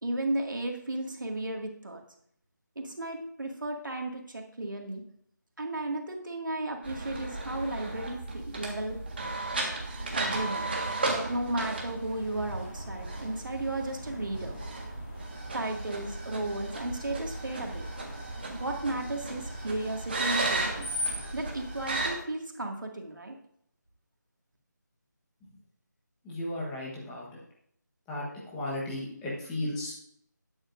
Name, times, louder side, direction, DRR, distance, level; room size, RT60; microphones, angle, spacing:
voice 1, 0.0-2.0 2.8-5.0 5.6-9.0 10.2-10.7 11.1-14.6 15.5-17.9 18.5-20.9 21.3-23.4, right 2 dB, 80° right, 2 dB, 2.1 m, -34 dB
sound 1, 6.8-22.1, right 2 dB, 30° right, 1.6 m, -35 dB
Screech, 12.0-21.3, left 1 dB, 30° left, 2.7 m, -43 dB
voice 2, 26.2-27.2 28.1-28.2 28.5-29.9, left 1 dB, 5° left, -5 dB, 1.2 m, -34 dB
12.0 x 9.9 x 2.6 m, 0.67 s
figure-of-eight pair, 175°, 10 cm